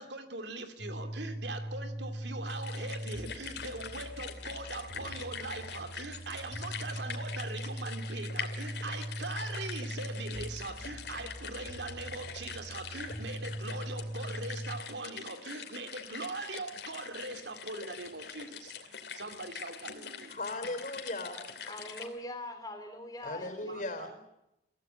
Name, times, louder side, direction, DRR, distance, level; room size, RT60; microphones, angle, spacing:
voice 1, 0.0-20.4 23.6-24.1, right 2 dB, 70° right, 2.6 m, -41 dB
sound 1, 0.8-14.8, right 1 dB, 45° right, 4.9 m, -41 dB
sound 2, 2.5-22.1, left 7 dB, 65° left, 2.8 m, -44 dB
voice 2, 20.3-21.4 23.2-24.1, left 2 dB, 45° left, 4.3 m, -37 dB
voice 3, 21.6-24.2, left 1 dB, 20° left, 3.2 m, -43 dB
24.0 x 16.0 x 8.8 m
head